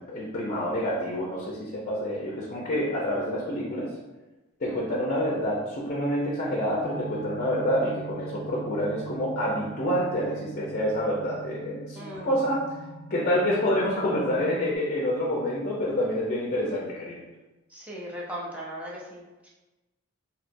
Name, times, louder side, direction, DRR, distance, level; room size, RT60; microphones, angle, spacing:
voice 1, 0.0-3.9 4.6-12.6 13.1-17.2, equal, 35° left, -4 dB, 0.5 m, -27 dB
sound 1, 6.8-14.8, right 4 dB, 30° right, 1.2 m, -42 dB
voice 2, 12.0-12.4 17.7-19.5, equal, 5° right, -5 dB, 0.6 m, -38 dB
3.1 x 2.8 x 2.6 m, 1.1 s
head